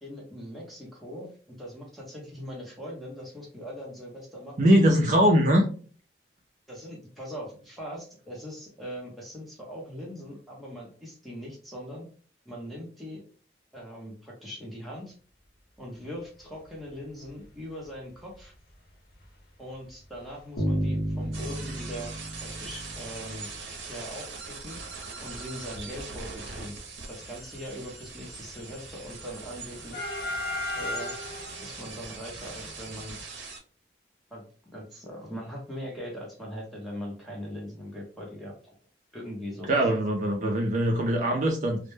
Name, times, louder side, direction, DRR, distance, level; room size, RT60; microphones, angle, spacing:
voice 1, 0.0-4.7 6.7-12.1 12.5-13.2 13.7-15.1 15.8-18.5 19.6-22.1 22.4-23.5 23.9-24.8 25.2-26.8 27.1-30.1 30.7-31.2 31.6-33.2 34.3-34.4 34.7-38.7 39.1-39.7, equal, ahead, -3 dB, 0.7 m, -40 dB
voice 2, 4.6-5.6 39.7-41.8, equal, 40° right, 0 dB, 0.4 m, -21 dB
sound 1, 17.2-17.4 17.9-18.0 18.2-18.4 19.2-19.3 19.7-19.9 20.2-20.3 20.6-22.9 23.1-23.8 24.1-33.2, left 1 dB, 55° left, 0.5 m, -39 dB
sound 2, 20.6-23.6, equal, 85° left, 0.7 m, -32 dB
sound 3, 21.3-33.6, right 4 dB, 85° right, 0.6 m, -42 dB
2.1 x 2.1 x 3.0 m, 0.42 s
head